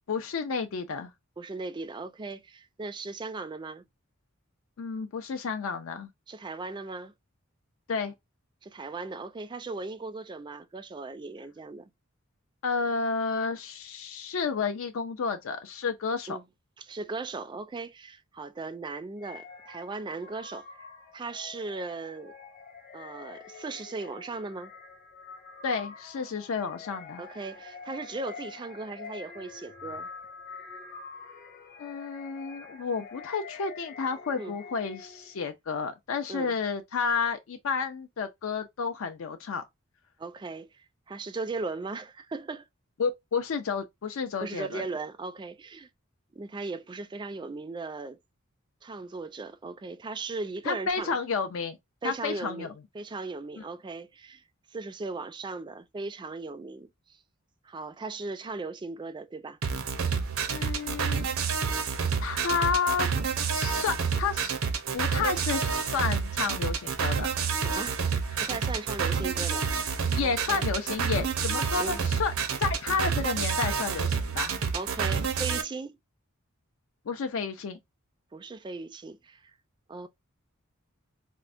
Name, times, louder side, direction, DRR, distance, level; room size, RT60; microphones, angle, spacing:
voice 1, 0.1-1.1 4.8-6.1 7.9-8.1 12.6-16.4 25.6-27.2 31.8-39.6 43.0-44.8 50.7-51.8 52.0-52.7 53.6-53.7 60.5-61.3 62.2-63.1 63.5-64.5 64.9-67.3 70.0-72.3 72.6-74.5 77.1-77.8, left 5 dB, 70° left, 0.4 m, -31 dB
voice 2, 1.4-3.9 6.3-7.1 8.6-11.9 16.3-16.4 16.8-22.3 22.9-24.7 27.2-30.1 34.3-34.6 36.3-36.6 40.2-42.7 44.4-45.9 46.3-48.2 48.8-51.2 52.0-54.4 54.7-57.2 57.6-59.6 67.6-68.1 68.4-69.7 70.2-70.7 71.8-72.0 74.7-76.0 78.3-79.5 79.9-80.1, right 3 dB, 20° right, 0.3 m, -38 dB
sound 1, 19.2-35.4, left 5 dB, 45° left, 0.9 m, -46 dB
sound 2, 59.6-75.6, right 6 dB, 80° right, 0.6 m, -29 dB
4.3 x 2.1 x 2.4 m
head